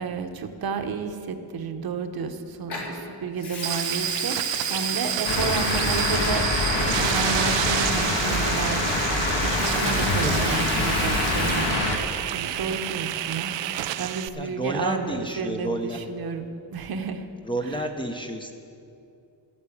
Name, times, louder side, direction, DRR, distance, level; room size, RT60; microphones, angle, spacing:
voice 1, 0.0-6.6 6.9-8.8 9.2-12.1 12.3-17.3 17.6-17.9, right 5 dB, 55° right, 7 dB, 0.9 m, -32 dB
Water tap faucet / Sink (filling or washing) / Liquid, 2.7-2.9 3.4-12.1 12.4-12.8, left 3 dB, 65° left, 3.1 m, -36 dB
sound 1, 3.6-14.3, right 13 dB, 80° right, 0.5 m, -29 dB
sound 2, 5.2-12.0, left 3 dB, 85° left, 1.9 m, -25 dB
voice 2, 14.4-16.0 17.4-18.5, right 1 dB, 10° left, 4 dB, 0.7 m, -30 dB
12.0 x 8.7 x 8.4 m, 2.6 s
wide cardioid pair, 170°, 43 cm